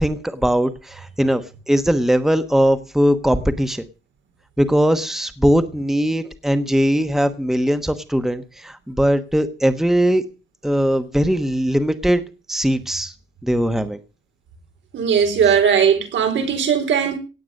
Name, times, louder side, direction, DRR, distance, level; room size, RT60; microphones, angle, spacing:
voice 1, 0.0-3.8 4.6-10.2 10.6-12.2 12.5-13.1 13.4-14.0, equal, ahead, 1.2 m, -20 dB
voice 2, 14.9-17.2, right 7 dB, 80° right, 4.2 m, -18 dB
17.5 x 8.8 x 6.5 m
wide cardioid pair, 150°, 19 cm